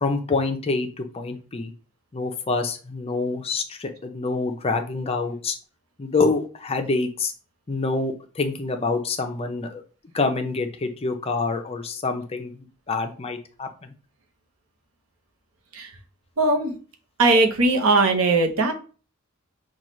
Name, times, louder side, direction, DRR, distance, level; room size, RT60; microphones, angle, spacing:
voice 1, 0.0-1.7 2.1-5.6 6.0-7.3 7.7-9.8 10.1-12.6 12.9-13.9, left 3 dB, 25° left, 5 dB, 0.5 m, -26 dB
voice 2, 16.4-16.8 17.2-18.7, right 3 dB, 75° right, 3 dB, 0.8 m, -19 dB
5.7 x 2.3 x 3.0 m, 0.38 s
head